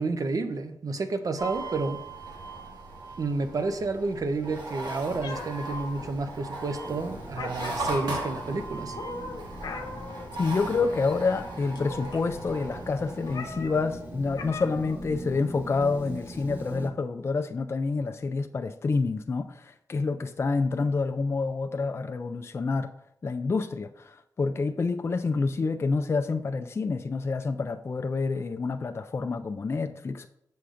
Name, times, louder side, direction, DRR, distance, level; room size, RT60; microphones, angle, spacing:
voice 1, 0.0-2.0 3.2-9.0, right 3 dB, 55° right, 0.6 m, -30 dB
sound 1, 1.4-13.5, right 2 dB, 85° right, 1.3 m, -38 dB
Meow, 5.2-16.8, left 3 dB, 90° left, 0.7 m, -43 dB
sound 2, 6.8-16.9, right 1 dB, 25° right, 0.8 m, -42 dB
voice 2, 10.4-22.9 23.2-30.3, left 4 dB, 35° left, 0.3 m, -28 dB
6.7 x 6.3 x 2.5 m
wide cardioid pair, 85°, 7 cm